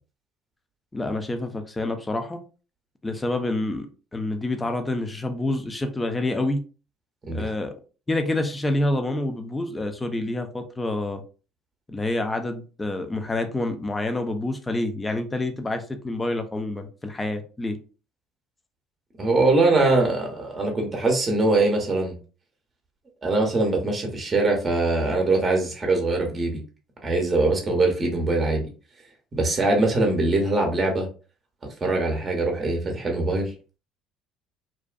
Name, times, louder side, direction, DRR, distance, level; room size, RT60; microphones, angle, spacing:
voice 1, 0.9-2.4 3.0-6.6 7.3-7.7 8.1-11.2 11.9-17.8, left 2 dB, 20° left, 6 dB, 0.6 m, -27 dB
voice 2, 19.2-22.2 23.2-26.6 27.0-28.7 29.3-31.1 31.8-33.5, right 2 dB, 30° right, 2 dB, 0.8 m, -22 dB
2.6 x 2.3 x 2.2 m, 0.35 s
hypercardioid pair, 65°, 0 cm